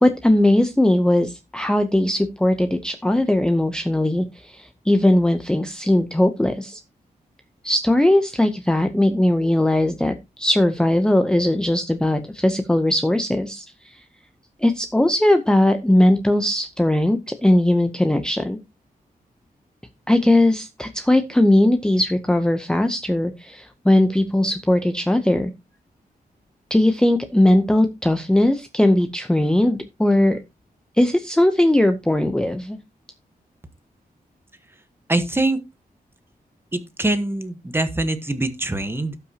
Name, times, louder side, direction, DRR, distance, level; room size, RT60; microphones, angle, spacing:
voice 1, 0.0-6.8 7.6-14.0 14.6-18.6 20.1-25.5 26.7-30.4 31.0-32.8, left 1 dB, 5° left, 7 dB, 0.6 m, -19 dB
voice 2, 35.1-35.6 36.7-39.2, right 2 dB, 15° right, 10 dB, 1.2 m, -23 dB
17.0 x 5.7 x 2.8 m, 0.24 s
wide cardioid pair, 145°, 16 cm